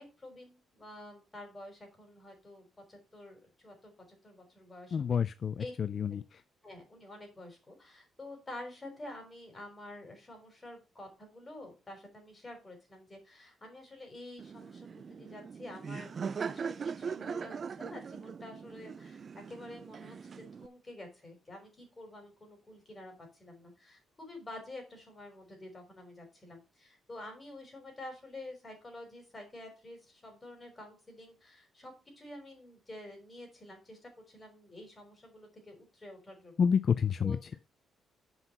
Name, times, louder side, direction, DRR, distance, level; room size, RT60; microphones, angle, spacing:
voice 1, 0.0-5.2 5.6-5.7 6.1-6.2 6.6-36.7 37.2-37.6, left 1 dB, 25° left, 5.6 m, -49 dB
voice 2, 4.9-6.4 36.6-37.5, left 7 dB, 50° left, 0.4 m, -29 dB
Laughter, 14.4-20.7, right 6 dB, 45° right, 0.5 m, -40 dB
8.0 x 5.7 x 5.9 m
cardioid pair, 90°, 0 cm